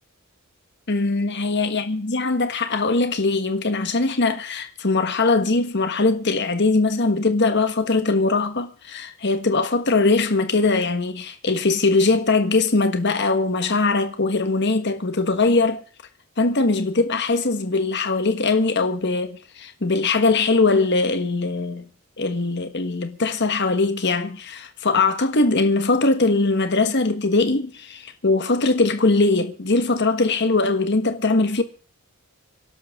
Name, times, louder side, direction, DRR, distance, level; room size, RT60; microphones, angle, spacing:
voice 1, 0.9-15.8 16.4-21.8 22.2-31.6, left 3 dB, 50° left, 1.5 m, -21 dB
27.0 x 12.0 x 3.7 m
head